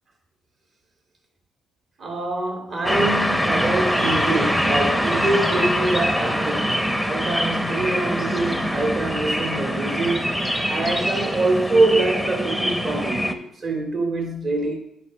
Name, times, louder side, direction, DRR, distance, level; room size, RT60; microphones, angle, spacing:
voice 1, 2.0-10.4 10.7-14.8, right 2 dB, 50° right, 2.4 m, -24 dB
sound 1, 2.8-13.3, equal, 5° right, 0.7 m, -23 dB
8.3 x 5.0 x 5.5 m
cardioid pair, 90°, 0 cm